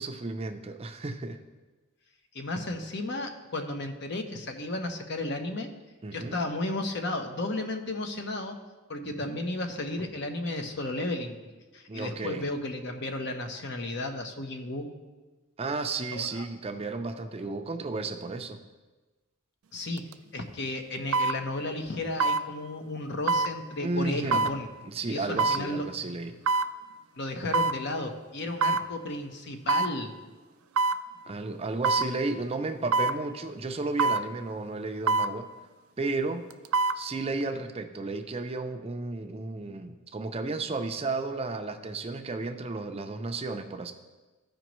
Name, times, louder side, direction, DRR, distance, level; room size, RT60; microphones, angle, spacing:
voice 1, 0.0-1.4 6.0-6.4 9.0-9.4 11.9-12.4 15.6-18.6 23.8-24.5 24.9-26.3 31.3-35.5 36.0-36.4 36.9-43.9, right 3 dB, 30° right, 6 dB, 0.5 m, -33 dB
voice 2, 2.3-5.7 6.1-8.6 8.9-11.4 11.7-14.9 16.1-16.4 19.7-20.1 20.3-24.7 25.1-25.9 27.2-30.1, left 2 dB, 55° left, 5 dB, 0.9 m, -33 dB
sound 1, 20.0-20.1 21.1-21.4 22.2-22.4 23.3-23.5 24.3-24.6 25.4-25.6 26.5-26.7 27.5-27.8 28.6-28.9 29.7-29.9 30.8-31.0 31.8-32.1 32.9-33.2 34.0-34.3 35.1-35.3 36.5-37.0 37.4-37.5, right 3 dB, 80° right, 0.4 m, -24 dB
15.0 x 5.1 x 3.1 m, 1.2 s
head